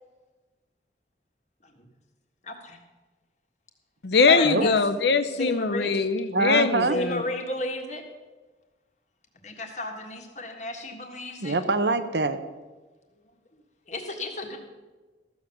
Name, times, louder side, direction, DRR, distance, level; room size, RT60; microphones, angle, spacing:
voice 1, 2.4-2.8 4.3-4.7 5.4-5.9 6.9-8.0 9.4-11.6 13.9-14.6, left 2 dB, 40° left, 1.7 m, -33 dB
voice 2, 4.0-7.2, left 4 dB, 70° left, 0.7 m, -22 dB
voice 3, 6.3-7.0 11.4-12.4, right 3 dB, 70° right, 0.8 m, -24 dB
14.0 x 7.1 x 6.9 m
head